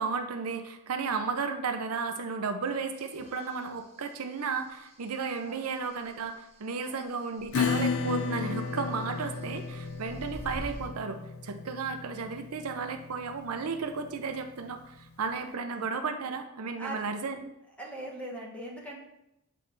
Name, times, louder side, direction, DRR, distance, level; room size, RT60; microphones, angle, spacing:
voice 1, 0.0-17.5, right 5 dB, 85° right, 7 dB, 0.6 m, -34 dB
sound 1, 3.0-3.6 4.0-4.1 4.5-5.0 5.9-6.0 7.4-8.0 9.5-10.9, equal, 30° right, 0.9 m, -43 dB
Acoustic guitar / Strum, 7.5-14.7, left 5 dB, 65° left, 0.5 m, -34 dB
voice 2, 17.8-19.0, right 1 dB, 5° left, -2 dB, 1.1 m, -40 dB
7.7 x 3.3 x 3.9 m, 0.85 s
head